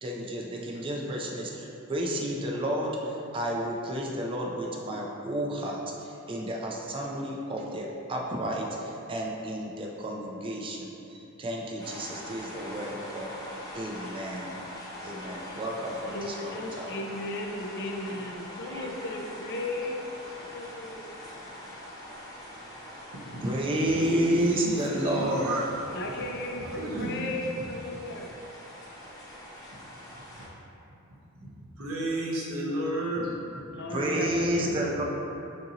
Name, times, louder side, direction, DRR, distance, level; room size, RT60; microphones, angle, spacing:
voice 1, 0.0-13.3 13.7-14.6 15.0-16.9 18.7-18.9 23.4-25.6 33.9-35.0, right 1 dB, 25° right, -1 dB, 0.4 m, -31 dB
sound 1, 11.8-30.5, left 1 dB, 15° left, 0.8 m, -43 dB
voice 2, 16.1-20.0 20.4-21.1 25.9-28.4 33.7-35.0, left 2 dB, 55° left, 1 dB, 0.4 m, -36 dB
voice 3, 23.9-25.7 26.6-27.2 31.4-31.5 31.8-33.3 33.7-33.8, right 1 dB, 80° right, -4 dB, 0.9 m, -32 dB
6.4 x 2.7 x 2.8 m, 2.8 s
head